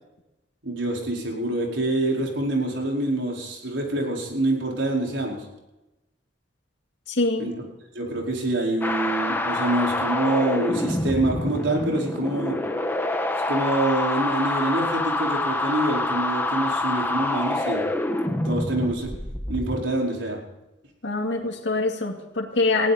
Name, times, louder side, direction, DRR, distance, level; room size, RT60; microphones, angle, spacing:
voice 1, 0.6-5.4 7.4-7.6 7.9-12.6 13.5-17.9 18.4-19.1 19.5-20.4, right 1 dB, 80° right, -1 dB, 4.8 m, -26 dB
voice 2, 7.1-7.5 21.0-22.9, left 3 dB, 70° left, 1 dB, 2.4 m, -24 dB
sound 1, 8.8-19.8, left 1 dB, 10° left, 1.4 m, -26 dB
20.5 x 16.0 x 4.3 m, 0.97 s
head